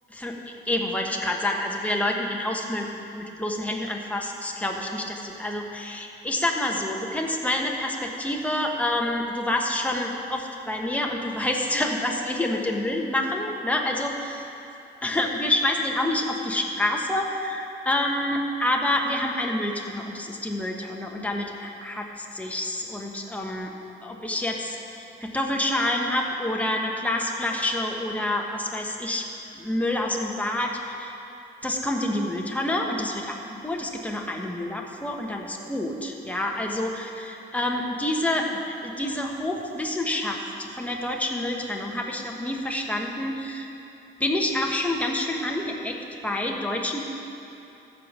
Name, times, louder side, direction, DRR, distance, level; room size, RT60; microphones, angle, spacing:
voice 1, 0.7-2.9 3.1-14.5 15.0-23.7 24.0-29.3 29.5-31.1 31.6-33.4 33.6-43.7 44.2-46.0 46.2-47.0, left 1 dB, 5° left, 0 dB, 1.2 m, -28 dB
14.0 x 5.2 x 6.1 m, 2.8 s
cardioid pair, 90°, 20 cm